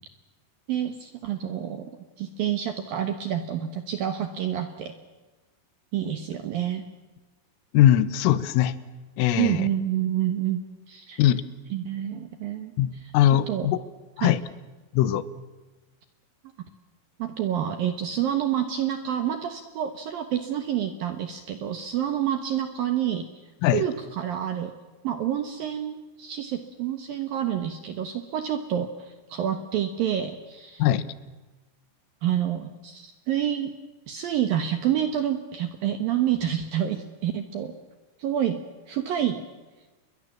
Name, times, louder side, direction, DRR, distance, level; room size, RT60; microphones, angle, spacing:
voice 1, 0.7-1.9 2.2-4.9 5.9-6.8 9.4-11.2 11.7-12.7 13.3-13.7 14.2-14.3 17.2-23.3 23.7-24.7 25.0-30.8 32.2-33.7 34.1-37.7 38.2-38.6 38.9-39.4, right 10 dB, 70° right, 8 dB, 2.3 m, -28 dB
voice 2, 7.7-8.7 9.2-9.7 11.2-11.4 12.8-13.8 14.2-14.4 14.9-15.2 23.6-23.8 30.8-31.1, left 12 dB, 85° left, 16 dB, 3.6 m, -21 dB
29.0 x 22.0 x 7.4 m, 1.2 s
omnidirectional pair, 5.8 m